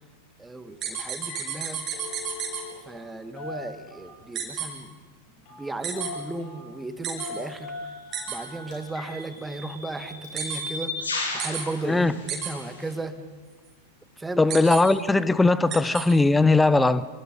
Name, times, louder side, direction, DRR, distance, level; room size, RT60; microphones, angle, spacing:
voice 1, 0.4-1.8 2.9-4.9 5.6-7.7 8.3-11.0 11.3-13.2 14.2-14.4, right 2 dB, 10° right, 2.0 m, -35 dB
Telephone, 0.7-0.9 1.2-1.5 1.8-3.1 3.4-4.3 5.5-5.7 6.0-6.7 7.2-9.2 9.5-9.6 10.2-10.4, left 3 dB, 45° left, 7.7 m, -40 dB
sound 1, 0.8-2.6 4.4-4.7 5.8-6.1 7.0-7.3 8.1-8.4 10.4-10.6 11.4-11.6 12.3-12.5 14.5-14.8 15.7-16.0, right 8 dB, 30° right, 6.9 m, -31 dB
sound 2, 7.5-7.7 8.7-12.9, left 3 dB, 70° left, 7.6 m, -35 dB
voice 2, 14.4-17.1, left 2 dB, 10° left, 1.0 m, -19 dB
28.0 x 25.0 x 5.3 m
figure-of-eight pair, 90°, 0 cm